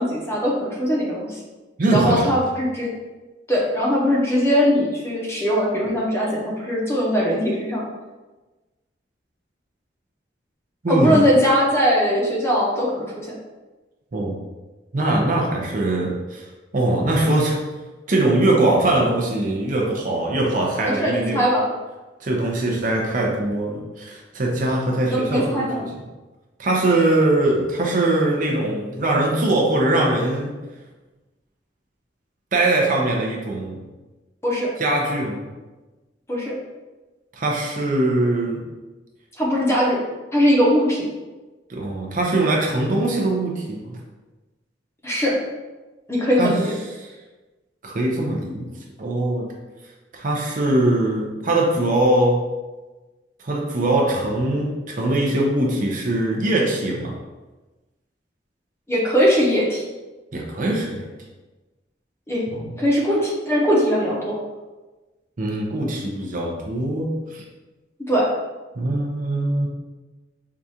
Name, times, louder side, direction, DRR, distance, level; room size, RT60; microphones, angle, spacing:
voice 1, 0.0-1.4 1.9-2.9 3.5-7.8 10.9-13.4 20.8-21.7 25.0-25.9 34.4-34.7 36.3-36.6 39.4-40.0 40.3-41.1 45.0-45.4 46.1-46.7 58.9-59.8 62.3-62.4 62.8-64.4 68.1-68.3, equal, 15° left, -3 dB, 0.7 m, -20 dB
voice 2, 1.8-2.4 10.8-11.2 14.1-14.4 14.9-16.5 16.7-17.6 18.1-21.5 22.2-25.7 26.6-30.6 32.5-33.8 34.8-35.5 37.4-38.6 41.7-44.0 46.4-46.6 47.0-47.1 47.8-48.7 49.0-49.5 50.1-52.4 53.4-57.1 60.3-61.1 62.5-62.7 65.4-67.4 68.8-69.7, right 2 dB, 45° right, -1 dB, 0.6 m, -21 dB
4.7 x 2.4 x 2.7 m, 1.2 s
head